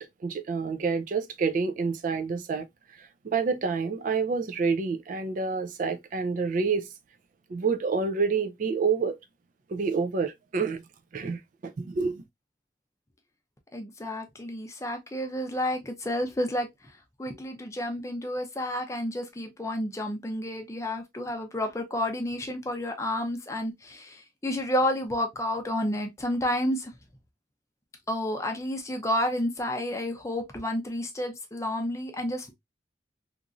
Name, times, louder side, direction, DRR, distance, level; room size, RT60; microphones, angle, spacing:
voice 1, 0.2-2.7 3.0-6.9 7.5-9.2 9.7-10.8 11.1-12.2, right 5 dB, 45° right, 0.3 m, -28 dB
voice 2, 13.7-26.9 28.1-32.5, left 1 dB, 15° left, 0.5 m, -30 dB
2.9 x 2.5 x 2.4 m
head